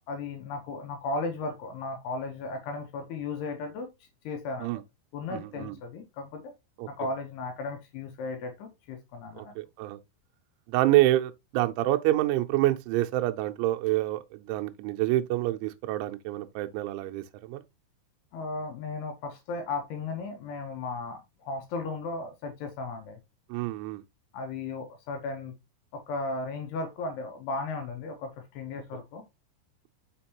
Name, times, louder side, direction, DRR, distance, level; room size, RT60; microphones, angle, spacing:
voice 1, 0.1-3.9 4.2-4.7 5.1-6.5 6.9-9.5 18.3-23.2 24.3-25.5 25.9-29.2, left 3 dB, 75° left, 2.7 m, -35 dB
voice 2, 5.3-5.8 6.8-6.9 9.4-10.0 10.7-17.6 23.5-24.0, right 16 dB, 85° right, 3.0 m, -27 dB
6.3 x 5.2 x 2.9 m
omnidirectional pair, 5.4 m